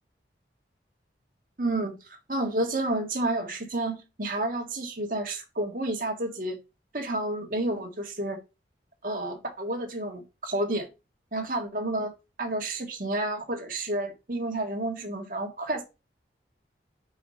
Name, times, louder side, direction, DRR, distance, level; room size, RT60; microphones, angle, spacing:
voice 1, 1.6-1.9 2.3-6.6 6.9-8.4 9.0-10.9 11.3-12.1 12.4-15.8, right 1 dB, 50° right, 1.6 m, -30 dB
5.3 x 4.9 x 5.3 m
head